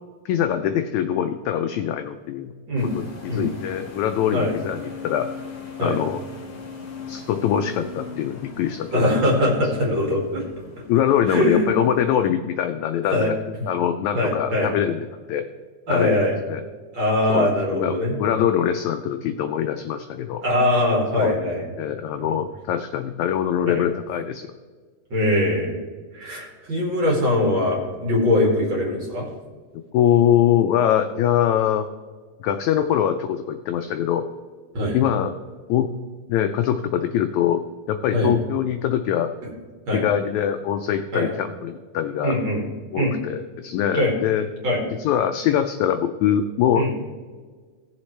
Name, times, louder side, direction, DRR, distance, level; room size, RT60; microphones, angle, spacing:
voice 1, 0.2-2.5 2.9-5.3 5.8-6.2 7.1-9.2 10.9-13.3 13.7-15.4 15.9-16.2 16.5-16.6 17.3-20.4 21.2-21.3 21.8-24.5 29.9-31.9 32.4-34.3 34.9-35.3 35.7-35.9 36.3-39.3 39.9-42.4 42.9-44.5 45.0-46.9, left 10 dB, 85° left, 7 dB, 1.6 m, -23 dB
sound 1, 2.8-12.3, left 5 dB, 40° left, 1.3 m, -39 dB
voice 2, 8.9-10.4 11.3-11.7 13.1-13.3 14.1-14.7 15.9-16.4 16.9-18.2 20.4-21.7 22.2-22.3 23.7-23.8 25.1-25.7 26.1-29.3 34.7-35.0 38.1-38.3 39.9-40.1 41.1-41.3 42.2-42.6 42.9-43.1 43.9-44.2 44.6-44.8 46.8-46.9, left 1 dB, 40° right, -2 dB, 2.6 m, -22 dB
17.5 x 7.2 x 3.2 m, 1.5 s
omnidirectional pair, 3.8 m